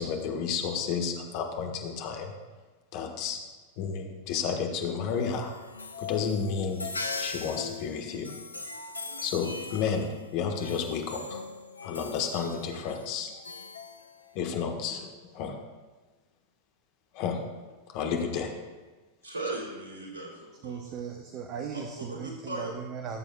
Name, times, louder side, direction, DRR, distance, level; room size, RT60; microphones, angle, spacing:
voice 1, 0.0-2.3 2.9-3.4 3.8-5.5 6.0-6.9 7.2-8.3 9.2-11.4 11.8-13.3 14.3-15.6 17.1-17.4 17.9-18.5, left 6 dB, 45° left, 3 dB, 1.3 m, -31 dB
sound 1, 5.1-14.6, left 3 dB, 80° left, 0.7 m, -40 dB
voice 2, 19.2-20.8 22.0-22.7, right 2 dB, 70° right, -3 dB, 3.1 m, -37 dB
voice 3, 20.6-23.2, right 7 dB, 35° right, 5 dB, 0.7 m, -37 dB
17.0 x 7.7 x 2.3 m, 1.3 s
figure-of-eight pair, 90°, 0 cm